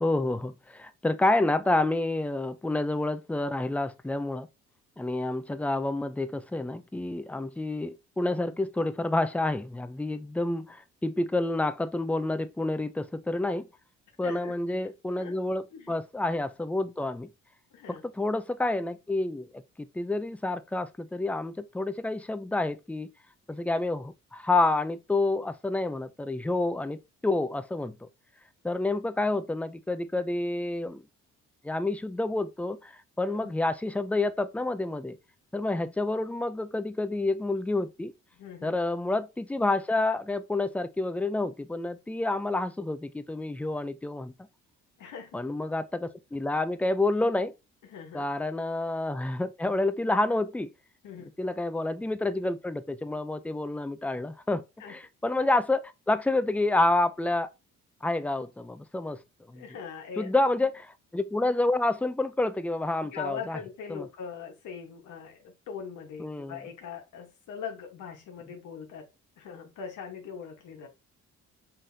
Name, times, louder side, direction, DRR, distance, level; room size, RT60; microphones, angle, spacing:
voice 1, 0.0-4.5 5.0-13.7 14.2-17.3 18.1-23.1 23.5-28.1 28.6-31.0 31.6-35.2 35.5-38.1 38.6-44.3 45.3-47.5 48.1-50.7 51.4-57.5 58.0-59.2 59.5-59.6 60.2-63.6 63.9-64.1 66.2-66.6, left 2 dB, 5° left, 0.4 m, -29 dB
voice 2, 14.2-14.6 15.2-15.3 15.7-15.9 17.7-18.0 33.2-33.5 38.3-38.8 45.0-45.4 47.8-48.3 51.0-51.3 54.8-55.0 59.5-60.5 63.1-69.1 69.4-70.9, left 7 dB, 80° left, 1.3 m, -41 dB
5.6 x 3.4 x 2.7 m
cardioid pair, 90°, 30 cm